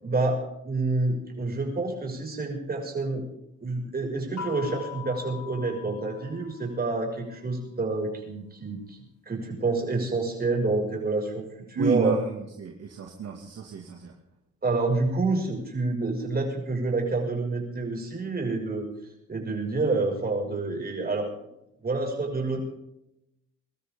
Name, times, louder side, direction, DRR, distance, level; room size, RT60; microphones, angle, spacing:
voice 1, 0.0-3.2 3.6-9.0 9.3-11.4 11.7-12.1 14.6-18.9 19.3-21.3 21.8-22.6, right 3 dB, 30° right, 0 dB, 6.6 m, -28 dB
sound 1, 4.4-7.1, left 8 dB, 60° left, 4.1 m, -41 dB
voice 2, 11.8-12.3 12.6-14.1, right 5 dB, 55° right, 1 dB, 2.3 m, -30 dB
23.5 x 13.0 x 3.8 m, 0.84 s
cardioid pair, 90°, 30 cm